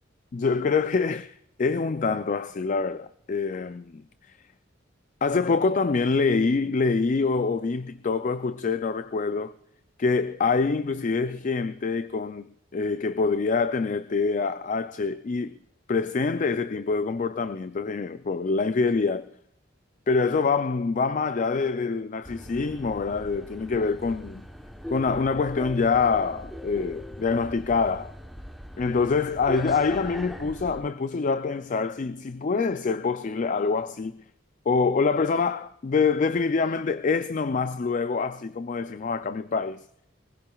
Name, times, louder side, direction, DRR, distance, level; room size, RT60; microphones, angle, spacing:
voice 1, 0.3-4.0 5.2-9.5 10.0-15.5 15.9-19.3 20.1-24.5 24.9-28.1 28.8-34.2 34.7-39.8, left 4 dB, 40° left, 0.4 m, -25 dB
sound 1, 22.2-30.8, equal, ahead, 0.9 m, -40 dB
22.5 x 16.5 x 2.3 m
head